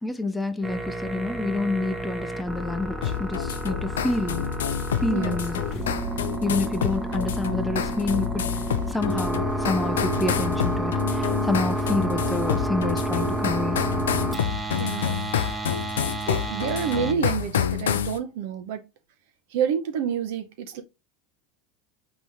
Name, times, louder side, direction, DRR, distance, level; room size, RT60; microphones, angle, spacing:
voice 1, 0.0-4.5 5.0-5.7 6.4-8.6 8.9-13.8, left 2 dB, 10° left, 0.5 m, -28 dB
sound 1, 0.6-17.1, right 1 dB, 10° right, 0.9 m, -30 dB
sound 2, 3.0-18.2, left 9 dB, 80° left, 0.3 m, -28 dB
sound 3, 5.5-6.3 6.7-6.8, equal, 55° left, 1.1 m, -38 dB
voice 2, 14.8-15.2 16.3-18.8 19.5-20.8, right 8 dB, 65° right, 0.7 m, -28 dB
4.0 x 3.0 x 3.4 m
hypercardioid pair, 85°, 0 cm